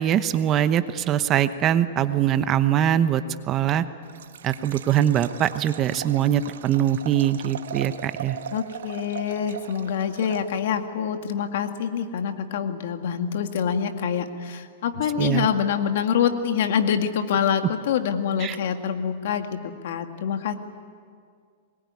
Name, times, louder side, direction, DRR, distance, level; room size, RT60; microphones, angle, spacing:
voice 1, 0.0-3.9 4.4-8.4 15.2-15.5 18.4-18.6, right 10 dB, 30° right, 12 dB, 0.9 m, -22 dB
Liquid, 4.0-10.9, right 8 dB, 85° right, 1.3 m, -39 dB
voice 2, 8.5-20.5, left 8 dB, 65° left, 6 dB, 2.1 m, -26 dB
24.0 x 21.5 x 9.7 m, 2.1 s
hypercardioid pair, 145°, 0 cm